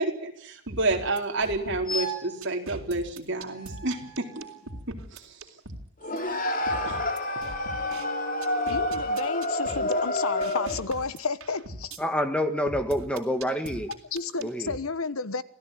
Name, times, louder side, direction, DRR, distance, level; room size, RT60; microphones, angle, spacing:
voice 1, 0.0-4.4 4.9-5.2 6.9-7.0, right 2 dB, 55° right, 4.1 m, -29 dB
sound 1, 0.7-2.1 2.4-5.9 6.2-6.3 6.7-8.1 8.4-12.0 12.7-14.8, right 2 dB, 80° right, 3.6 m, -40 dB
sound 2, 1.9-2.4 3.5-4.8 6.1-7.0, right 2 dB, 20° left, 7.1 m, -36 dB
sound 3, 6.0-10.9, left 1 dB, 40° left, 3.0 m, -28 dB
voice 2, 8.7-12.0 14.1-15.4, left 4 dB, 85° left, 1.3 m, -31 dB
voice 3, 12.0-13.9 14.4-14.7, equal, 5° left, 1.7 m, -27 dB
26.5 x 16.5 x 9.3 m
head